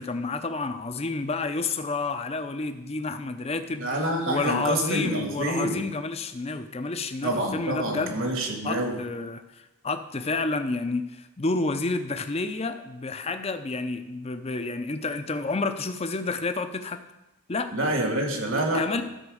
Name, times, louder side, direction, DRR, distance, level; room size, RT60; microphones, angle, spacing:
voice 1, 0.0-3.9 4.3-8.3 8.6-17.0 17.5-17.7 18.7-19.0, left 3 dB, 30° left, 9 dB, 0.5 m, -30 dB
voice 2, 3.8-5.8 7.2-9.0 17.7-19.0, right 1 dB, 60° right, 3 dB, 1.9 m, -27 dB
12.5 x 4.4 x 6.3 m, 0.97 s
head